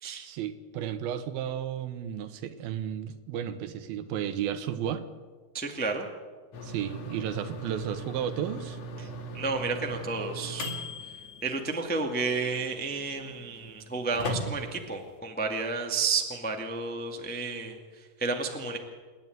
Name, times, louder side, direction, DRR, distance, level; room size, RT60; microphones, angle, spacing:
voice 1, 0.2-5.1 6.6-8.8, right 9 dB, 80° right, 11 dB, 2.9 m, -33 dB
voice 2, 5.5-6.1 9.3-10.7 11.4-17.8 18.2-18.8, right 4 dB, 5° left, 2 dB, 0.7 m, -31 dB
sound 1, 6.5-15.2, equal, 50° left, 2.8 m, -39 dB
28.5 x 11.0 x 9.4 m, 1.5 s
omnidirectional pair, 4.3 m